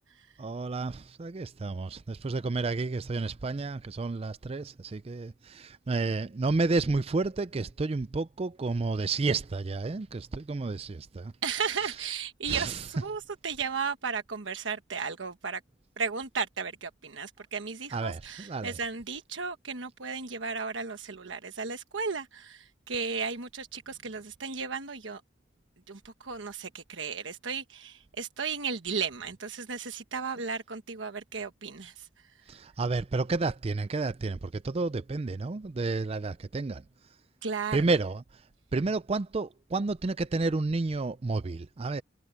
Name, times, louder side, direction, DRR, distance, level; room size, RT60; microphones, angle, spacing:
voice 1, 0.4-11.3 11.8-11.9 12.5-12.9 17.9-18.8 32.5-36.8 37.7-38.2 38.7-42.0, right 3 dB, 30° right, 0.4 m, -31 dB
voice 2, 11.4-15.6 16.0-25.2 25.9-32.1 37.4-37.8, right 5 dB, 80° right, 1.2 m, -35 dB
head